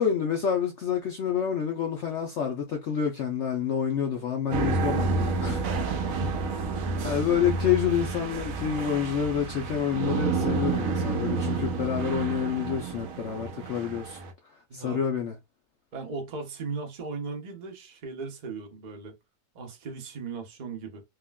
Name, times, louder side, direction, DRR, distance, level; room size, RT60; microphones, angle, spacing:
voice 1, 0.0-5.9 7.0-14.2 14.7-15.3, left 8 dB, 70° left, 0.6 m, -28 dB
sound 1, 4.5-14.3, right 4 dB, 65° right, 0.9 m, -30 dB
voice 2, 5.9-6.4 14.7-15.0 15.9-19.1 19.5-21.0, right 4 dB, 50° right, 0.5 m, -37 dB
3.5 x 2.3 x 2.2 m
omnidirectional pair, 1.8 m